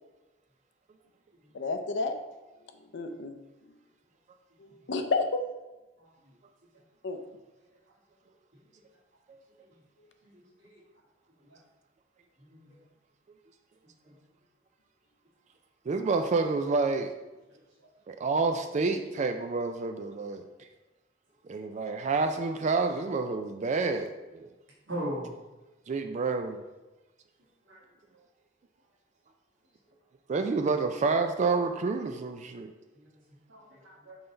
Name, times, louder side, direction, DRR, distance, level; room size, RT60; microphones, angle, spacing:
voice 1, 1.5-2.2 2.9-3.4 4.6-5.4 7.0-7.2, left 3 dB, 70° left, 7 dB, 0.5 m, -30 dB
voice 2, 10.3-10.7 11.5-11.6 12.4-12.8 14.0-14.2 24.9-25.3 27.7-27.8 33.0-33.1 33.5-34.2, equal, 75° right, -6 dB, 1.8 m, -39 dB
voice 3, 15.9-17.1 18.1-20.4 21.5-24.5 25.9-26.6 30.3-32.7, right 4 dB, 40° right, 6 dB, 0.4 m, -28 dB
5.6 x 3.9 x 4.4 m, 1.1 s
head